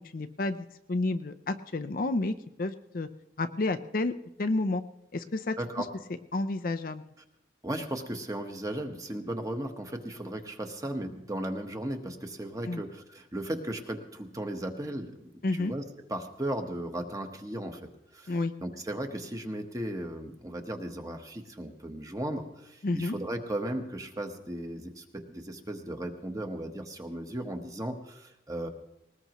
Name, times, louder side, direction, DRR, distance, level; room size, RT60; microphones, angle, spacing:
voice 1, 0.1-3.1 3.4-4.1 4.4-4.8 5.1-5.8 6.3-7.0 12.7-12.8 15.4-15.7 18.3-18.5 22.8-23.1, left 2 dB, 50° left, 9 dB, 0.6 m, -30 dB
voice 2, 5.6-5.9 7.6-15.8 16.1-28.7, right 1 dB, 20° right, 5 dB, 1.2 m, -36 dB
20.5 x 19.0 x 3.0 m, 0.85 s
head